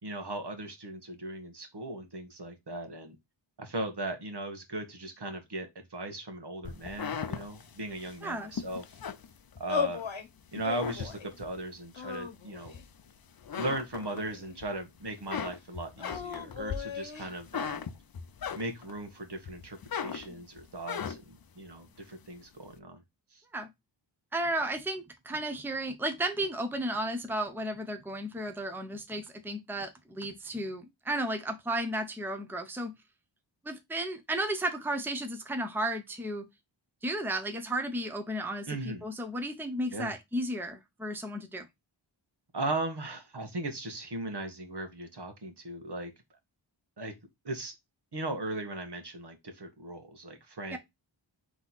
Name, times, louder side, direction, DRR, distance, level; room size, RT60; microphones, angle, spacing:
voice 1, 0.0-3.2 3.6-8.9 9.6-10.0 10.5-12.8 13.6-17.9 18.5-23.0 23.3-23.4 38.7-39.1 39.9-40.1 42.5-46.1 47.0-47.1 47.4-47.7 48.1-50.8, right 2 dB, 55° right, 1.3 m, -38 dB
sound 1, 6.6-10.1 10.5-11.6 12.1-13.1 13.4-14.7 15.0-19.0 19.4-21.4, left 7 dB, 50° left, 0.6 m, -38 dB
sound 2, 9.7-10.3 10.6-11.3 11.9-12.9 13.6-14.6 16.0-17.3, left 6 dB, 70° left, 1.1 m, -37 dB
voice 2, 24.3-32.9 33.6-36.5 37.0-41.7 50.7-50.8, right 1 dB, 5° right, 0.8 m, -34 dB
3.9 x 3.0 x 3.9 m
wide cardioid pair, 50°, 48 cm